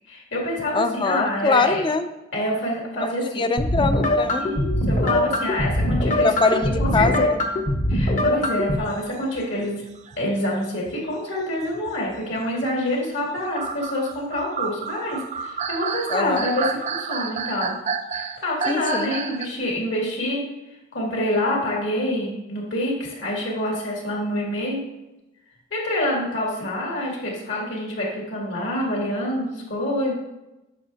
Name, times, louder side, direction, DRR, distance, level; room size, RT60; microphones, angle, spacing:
voice 1, 0.1-1.8 2.3-3.5 4.3-7.3 7.9-9.8 10.2-17.7 18.1-20.4 20.9-24.8 25.7-30.1, left 1 dB, 70° left, -3 dB, 2.4 m, -27 dB
voice 2, 0.7-2.1 3.0-4.5 6.2-7.4 16.1-16.5 18.7-19.1, left 3 dB, 25° left, 9 dB, 0.4 m, -23 dB
sound 1, 3.6-8.8, left 1 dB, 40° left, 0.9 m, -22 dB
sound 2, 8.8-11.0 11.6-12.7 13.4-19.6, right 6 dB, 35° right, 0.4 m, -30 dB
9.1 x 6.2 x 2.8 m, 0.97 s
head